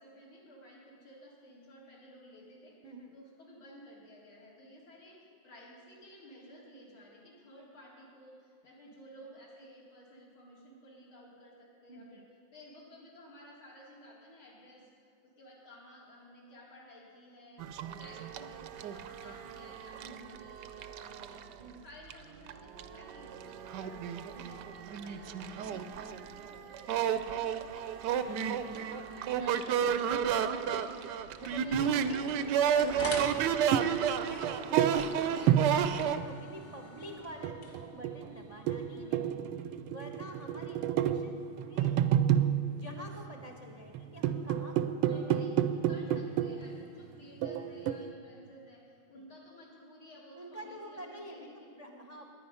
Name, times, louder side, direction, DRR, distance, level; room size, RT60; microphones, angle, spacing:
voice 1, 0.0-2.7 3.1-17.7 18.0-24.0 24.3-27.9 28.3-31.2 31.6-33.8 35.3-35.9 38.9-39.4 45.1-52.0, equal, 75° left, -6 dB, 4.6 m, -55 dB
voice 2, 2.8-3.1 11.9-12.2 20.0-20.4 21.6-21.9 24.3-24.6 28.1-29.3 31.4-33.7 34.2-39.4 39.9-42.0 42.8-45.5 46.1-46.3 49.1-49.3 50.3-52.3, equal, 30° right, 2 dB, 0.7 m, -48 dB
sound 1, 17.6-21.5 22.1-22.2 22.5-36.2, right 8 dB, 70° right, 1.0 m, -32 dB
sound 2, 31.4-39.3, left 1 dB, 40° left, 1.5 m, -46 dB
sound 3, 33.3-36.7 37.3-43.5 43.9-46.8 47.4-48.1, right 10 dB, 90° right, 1.5 m, -30 dB
19.5 x 10.5 x 5.5 m, 2.2 s
omnidirectional pair, 2.3 m